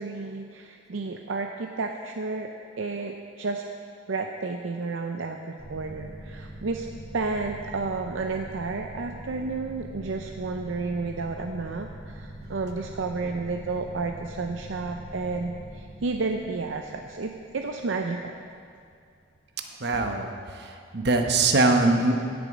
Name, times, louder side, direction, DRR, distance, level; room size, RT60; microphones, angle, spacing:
voice 1, 0.0-2.5 2.8-3.6 4.1-6.9 7.1-18.3, right 3 dB, 70° right, 4 dB, 0.5 m, -31 dB
sound 1, 5.6-18.8, right 1 dB, 25° left, 2.1 m, -43 dB
voice 2, 19.8-20.3 20.6-22.4, right 2 dB, 55° right, 4 dB, 0.9 m, -22 dB
15.5 x 7.0 x 5.1 m, 2.3 s
head